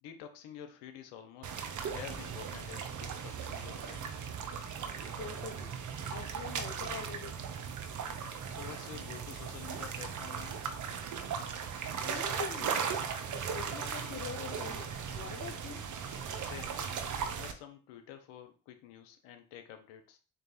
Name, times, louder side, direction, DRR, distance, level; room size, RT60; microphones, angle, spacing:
voice 1, 0.0-1.5 1.9-4.1 8.5-10.7 16.1-16.8 17.4-20.2, left 10 dB, 75° left, 0.8 m, -49 dB
sound 1, 1.4-17.5, right 6 dB, 45° right, 0.7 m, -38 dB
voice 2, 5.2-5.7 6.1-7.4 8.1-8.2 12.1-15.8, left 6 dB, 30° left, 0.6 m, -44 dB
3.9 x 2.7 x 3.9 m
hypercardioid pair, 50°, 43 cm